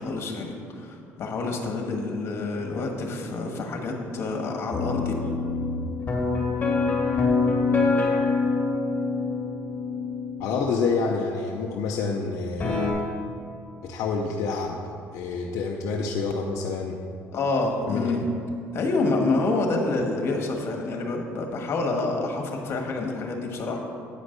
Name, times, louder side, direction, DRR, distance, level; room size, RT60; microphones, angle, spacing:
voice 1, 0.0-5.1 17.3-18.3 18.7-23.8, left 3 dB, 50° left, 2 dB, 1.6 m, -27 dB
sound 1, 4.7-10.4 12.6-12.9, left 4 dB, 30° left, 2.2 m, -25 dB
voice 2, 10.4-12.9 13.8-14.8 15.1-17.0 17.9-18.2, left 4 dB, 75° left, 0 dB, 0.7 m, -28 dB
9.2 x 5.3 x 6.6 m, 2.7 s
cardioid pair, 105°, 5 cm